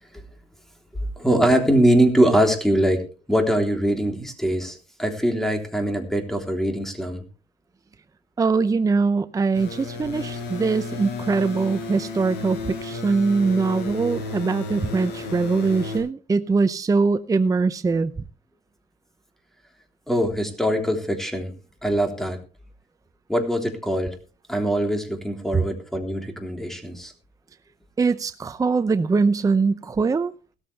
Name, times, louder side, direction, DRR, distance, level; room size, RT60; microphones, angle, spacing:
voice 1, 1.2-7.2 20.1-21.5 21.8-22.4 23.3-24.2 24.5-27.1, right 1 dB, ahead, 5 dB, 3.4 m, -22 dB
voice 2, 8.4-18.1 28.0-30.3, right 4 dB, 20° right, 11 dB, 0.6 m, -22 dB
sound 1, 9.5-16.0, left 3 dB, 85° left, 6.4 m, -33 dB
17.0 x 13.5 x 3.4 m, 0.34 s
cardioid pair, 110°, 17 cm